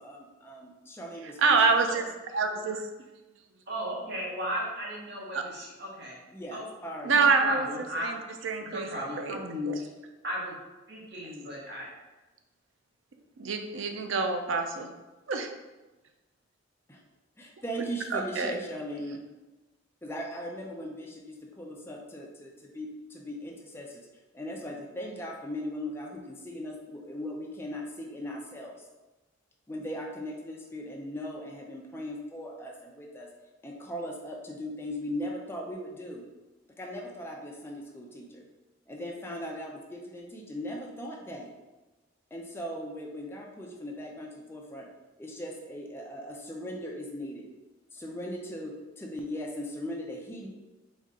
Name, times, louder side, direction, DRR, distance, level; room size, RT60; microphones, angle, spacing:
voice 1, 0.0-2.1 6.3-7.2 16.9-17.0 17.4-19.2 20.0-24.1 24.3-28.7 29.7-33.3 33.6-36.3 36.8-38.4 38.9-41.5 42.3-44.9 45.2-47.5 47.9-50.5, equal, 10° left, -1 dB, 0.5 m, -39 dB
voice 2, 1.4-2.9 5.3-5.4 7.0-7.7 8.0-8.2 8.4-8.9 9.2-9.4 9.7-9.8 13.4-14.9 15.3-15.5 18.1-18.5, right 4 dB, 85° right, 5 dB, 0.4 m, -26 dB
voice 3, 3.7-6.2 6.5-6.7 7.1-8.1 8.6-9.8 10.2-10.6 10.9-11.9, equal, 60° right, -4 dB, 1.1 m, -35 dB
4.2 x 2.4 x 3.6 m, 1.1 s
head